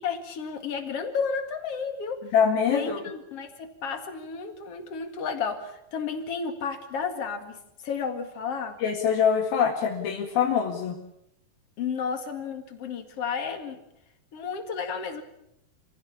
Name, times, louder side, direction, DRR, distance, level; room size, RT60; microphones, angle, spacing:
voice 1, 0.0-2.2 2.7-8.8 11.8-13.8 14.3-15.2, left 5 dB, 45° left, 7 dB, 2.7 m, -32 dB
voice 2, 2.3-3.0 8.8-11.0, left 7 dB, 75° left, -1 dB, 3.8 m, -24 dB
26.5 x 15.5 x 8.6 m, 0.79 s
omnidirectional pair, 4.3 m